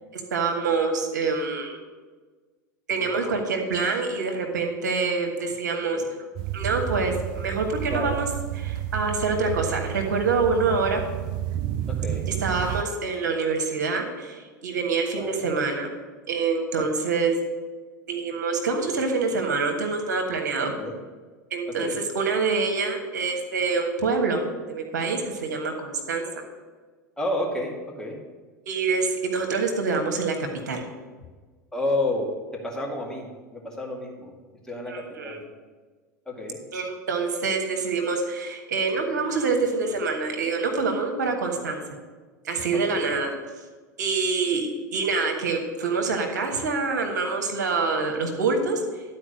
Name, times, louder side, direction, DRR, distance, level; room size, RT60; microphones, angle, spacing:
voice 1, 0.3-1.8 2.9-6.0 6.5-8.3 8.5-11.0 12.4-15.9 16.3-17.4 18.1-20.7 21.5-21.9 22.1-26.2 28.7-30.4 30.7-30.8 34.9-35.4 36.7-41.8 42.4-43.3 44.0-49.0, right 4 dB, 70° right, 3 dB, 1.4 m, -26 dB
voice 2, 3.0-3.4 5.9-6.1 7.9-8.1 11.9-12.3 15.1-15.3 16.8-17.0 20.8-20.9 21.8-22.0 27.2-28.2 31.7-34.3 34.6-35.5 36.3-36.6 42.7-43.2, left 1 dB, 5° left, -2 dB, 2.1 m, -31 dB
sound 1, 6.4-12.8, right 12 dB, 45° right, 0.5 m, -31 dB
11.5 x 4.5 x 6.4 m, 1.4 s
figure-of-eight pair, 80°, 10 cm